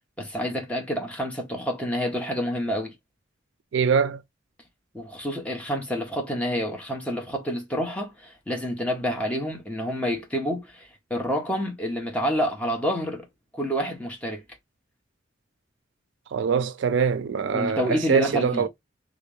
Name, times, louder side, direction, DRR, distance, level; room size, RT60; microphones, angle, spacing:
voice 1, 0.2-2.9 4.9-13.2 13.5-14.4 17.5-18.6, equal, 5° left, 0.9 m, -28 dB
voice 2, 3.7-4.2 16.3-18.7, right 6 dB, 75° right, 0.4 m, -23 dB
3.2 x 2.4 x 3.2 m
head